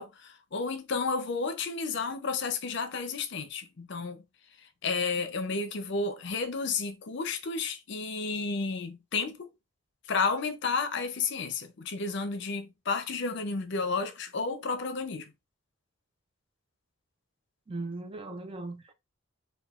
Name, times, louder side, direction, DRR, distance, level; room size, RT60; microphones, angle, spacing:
voice 1, 0.0-4.2 4.6-9.5 10.1-15.3, left 4 dB, 60° left, 0.6 m, -32 dB
voice 2, 17.7-18.9, right 2 dB, 25° right, 0.5 m, -38 dB
4.8 x 2.3 x 2.4 m
head